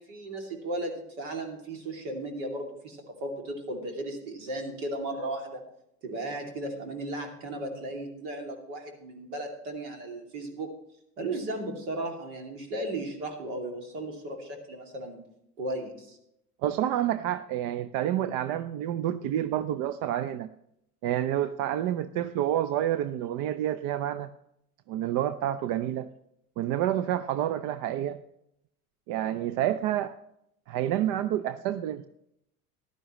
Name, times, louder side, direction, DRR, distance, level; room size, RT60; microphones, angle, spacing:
voice 1, 0.0-5.6 6.0-10.7 11.2-15.2 15.6-16.2, right 1 dB, 70° right, 2 dB, 2.7 m, -35 dB
voice 2, 16.6-20.5 21.0-24.3 24.9-26.1 26.6-28.2 29.1-30.1 30.7-32.1, right 11 dB, 50° right, 13 dB, 0.6 m, -28 dB
14.5 x 11.5 x 3.1 m, 0.78 s
hypercardioid pair, 75°, 45 cm